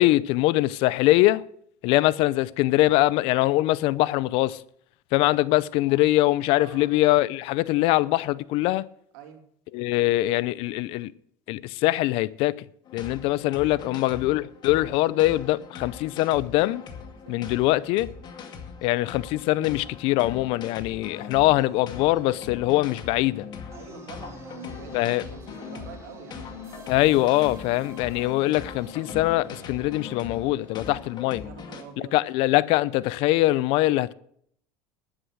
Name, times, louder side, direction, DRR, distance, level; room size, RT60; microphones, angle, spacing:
voice 1, 0.0-1.4 1.8-4.6 5.1-8.9 9.7-11.1 11.5-12.5 12.9-16.8 17.3-18.1 18.8-23.4 24.9-25.2 26.9-31.4 32.1-34.1, left 17 dB, 65° left, 0.6 m, -23 dB
voice 2, 6.5-6.9 9.1-9.4 13.8-14.1 17.3-17.4 23.7-26.6 31.4-32.2, right 7 dB, 75° right, 2.7 m, -46 dB
sound 1, 12.8-31.8, left 6 dB, 45° left, 2.1 m, -41 dB
sound 2, 21.2-31.0, left 1 dB, 30° right, 3.8 m, -46 dB
11.0 x 9.8 x 6.3 m
supercardioid pair, 95°, 10 cm